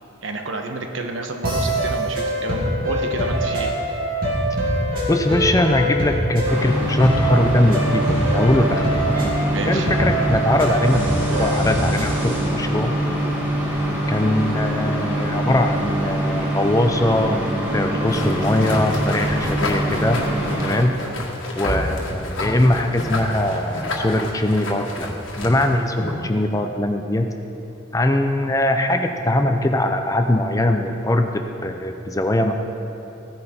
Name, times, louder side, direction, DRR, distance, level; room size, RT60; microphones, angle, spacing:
voice 1, 0.2-3.7 9.5-9.9, right 3 dB, 70° right, 4 dB, 1.1 m, -29 dB
sound 1, 1.4-12.1, right 1 dB, 45° right, 2.9 m, -24 dB
voice 2, 5.1-8.9 9.6-11.0 11.3-12.9 14.1-17.4 17.7-20.2 20.6-20.9 21.5-27.3 27.9-32.5, left 1 dB, 15° left, 5 dB, 0.6 m, -21 dB
sound 2, 6.4-20.7, equal, 10° right, 2.3 m, -24 dB
sound 3, 18.1-26.3, left 1 dB, 70° left, 1.8 m, -29 dB
16.0 x 10.5 x 4.4 m, 2.8 s
head